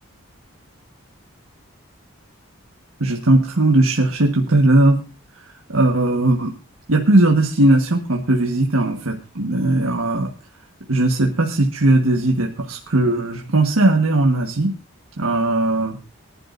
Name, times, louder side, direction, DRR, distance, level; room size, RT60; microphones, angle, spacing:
voice 1, 3.0-5.0 5.3-6.5 6.9-10.3 10.9-14.8 15.2-16.0, right 2 dB, 80° right, 1 dB, 1.5 m, -18 dB
23.0 x 11.5 x 2.6 m, 0.32 s
head